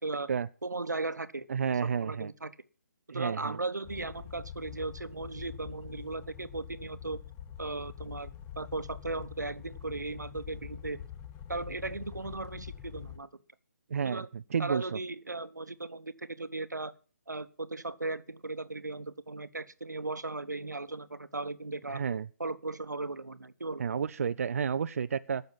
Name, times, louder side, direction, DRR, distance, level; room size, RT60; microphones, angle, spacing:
voice 1, 0.6-2.5 3.1-7.2 7.6-11.0 11.5-13.3 14.0-14.3 14.6-16.9 17.3-22.0 22.4-23.8, right 3 dB, 90° right, 1.1 m, -37 dB
voice 2, 1.5-2.3 3.1-3.6 13.9-15.0 21.9-22.3 23.8-25.4, right 6 dB, 55° right, 0.6 m, -31 dB
sound 1, 3.8-13.2, left 9 dB, 20° left, 0.9 m, -45 dB
15.5 x 6.7 x 7.5 m
figure-of-eight pair, 150°, 9 cm